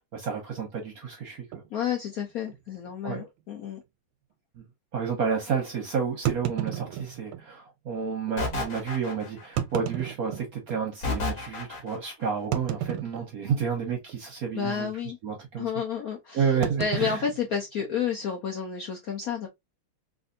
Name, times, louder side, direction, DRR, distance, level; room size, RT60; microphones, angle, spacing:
voice 1, 0.1-1.5 3.0-3.3 4.9-14.9 15.2-15.7 16.3-17.2, right 6 dB, 60° right, 1.0 m, -30 dB
sound 1, 1.5-1.7 2.4-2.6 2.9-3.0 3.6-3.7 6.2-7.5 8.3-8.4 9.4-10.8 11.4-11.5 12.5-13.6 13.9-14.2 14.5-14.8 16.6-18.2, right 11 dB, 90° right, 1.4 m, -32 dB
voice 2, 1.7-3.8 14.5-15.2 15.6-16.5 16.8-19.5, left 7 dB, 70° left, 0.8 m, -30 dB
sound 2, 8.4-9.6 11.0-12.1, left 4 dB, 50° left, 1.4 m, -32 dB
3.3 x 2.6 x 2.6 m
omnidirectional pair, 2.3 m